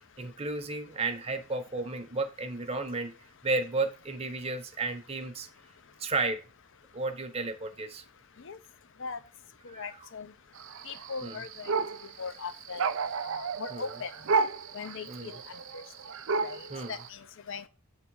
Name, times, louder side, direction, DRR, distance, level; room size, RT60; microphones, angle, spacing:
voice 1, 0.2-3.1 3.4-5.5 6.0-6.4 6.9-8.0 9.7-10.1 10.7-10.8 11.2-11.4 13.7-13.9 15.1-15.4 16.7-16.9, right 3 dB, 25° right, 7 dB, 0.9 m, -33 dB
voice 2, 9.6-10.3 10.9-11.7 12.2-12.9 13.2-14.1 14.7-15.8 16.4-17.7, left 5 dB, 60° left, 12 dB, 0.6 m, -40 dB
sound 1, 10.5-17.1, right 4 dB, 60° right, 0.5 m, -32 dB
7.9 x 3.8 x 4.7 m, 0.34 s
head